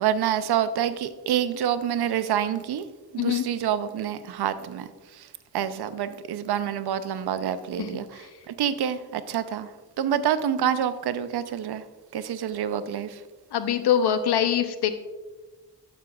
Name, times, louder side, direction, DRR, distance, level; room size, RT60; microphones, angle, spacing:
voice 1, 0.0-2.9 3.1-4.9 5.2-5.3 5.5-8.2 8.5-9.7 10.0-11.8 12.1-13.2, right 9 dB, 80° right, 13 dB, 0.6 m, -27 dB
voice 2, 13.5-14.9, left 9 dB, 80° left, 10 dB, 0.7 m, -23 dB
12.5 x 6.1 x 2.3 m, 1.3 s
cardioid pair, 55°, 39 cm